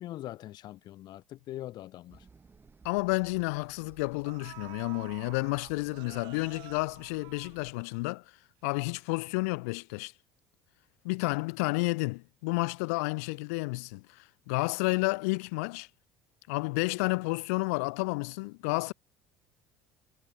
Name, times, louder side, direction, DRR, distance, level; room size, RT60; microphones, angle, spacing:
voice 1, 0.0-2.3, left 14 dB, 60° left, 2.3 m, -42 dB
sound 1, 2.1-7.7, right 4 dB, 25° right, 7.9 m, -59 dB
sound 2, 2.1-2.2 2.5-2.7 3.7-3.8 4.2-8.2 8.5-8.6, right 21 dB, 70° right, 2.9 m, -50 dB
voice 2, 2.8-8.2 8.6-10.1 11.0-14.0 14.5-15.9 16.5-18.9, left 28 dB, 80° left, 0.5 m, -31 dB
hypercardioid pair, 70°, 8 cm